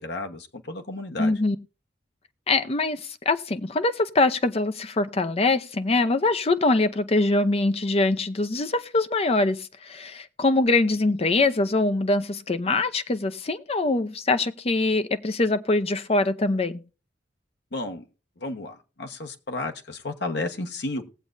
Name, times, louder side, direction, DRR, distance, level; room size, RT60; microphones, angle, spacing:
voice 1, 0.0-1.4 17.7-18.1 18.4-21.1, left 2 dB, 65° left, 1.3 m, -32 dB
voice 2, 1.2-1.6 2.5-16.8, left 2 dB, 35° left, 0.7 m, -23 dB
20.5 x 7.6 x 2.6 m
head